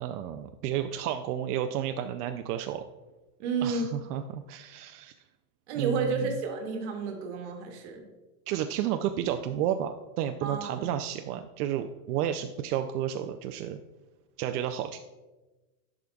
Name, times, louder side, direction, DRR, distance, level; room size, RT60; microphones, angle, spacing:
voice 1, 0.0-2.8 3.6-5.1 5.7-6.4 8.5-13.8 14.4-15.0, right 10 dB, 80° right, 7 dB, 0.5 m, -31 dB
voice 2, 3.4-3.8 5.7-8.0 10.4-10.9, right 4 dB, 50° right, 3 dB, 1.2 m, -31 dB
10.5 x 5.0 x 2.3 m, 1.1 s
supercardioid pair, 180°, 46 cm